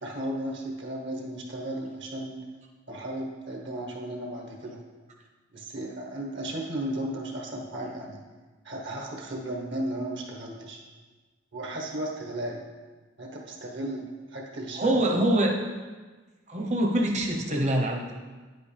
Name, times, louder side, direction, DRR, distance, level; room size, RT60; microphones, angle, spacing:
voice 1, 0.0-2.4 2.9-4.8 5.5-8.2 8.6-10.8 11.5-12.6 13.2-14.0 14.3-15.3, right 1 dB, 60° right, 0 dB, 1.3 m, -35 dB
voice 2, 14.8-15.5 16.5-18.1, right 1 dB, 35° right, 1 dB, 1.0 m, -24 dB
9.9 x 8.1 x 3.4 m, 1.3 s
head